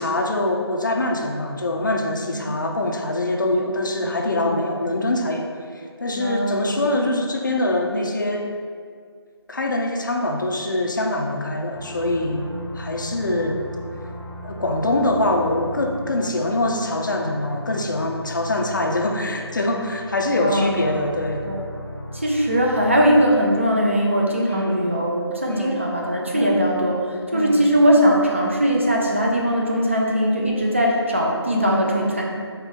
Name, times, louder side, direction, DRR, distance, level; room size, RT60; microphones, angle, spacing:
voice 1, 0.0-8.5 9.5-13.6 14.4-21.4 24.4-24.8 25.5-25.9 26.3-26.6 27.3-27.6 31.6-32.0, left 1 dB, 45° left, 2 dB, 0.4 m, -24 dB
voice 2, 6.1-6.9 20.3-21.0 21.5-21.6 22.1-32.2, equal, 30° right, -2 dB, 0.4 m, -20 dB
sound 1, 11.7-23.2, left 1 dB, 75° left, 0.8 m, -37 dB
4.4 x 3.3 x 3.5 m, 2.1 s
figure-of-eight pair, 165°, 14 cm